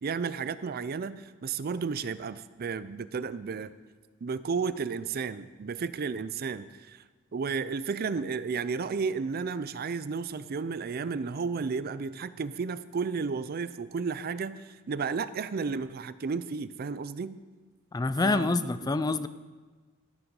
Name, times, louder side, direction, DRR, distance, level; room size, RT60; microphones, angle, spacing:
voice 1, 0.0-3.7 4.2-7.0 7.3-17.4 18.2-18.5, right 5 dB, 45° right, 15 dB, 0.4 m, -33 dB
voice 2, 17.9-19.3, left 3 dB, 20° left, 13 dB, 0.3 m, -26 dB
13.0 x 8.8 x 5.3 m, 1.4 s
head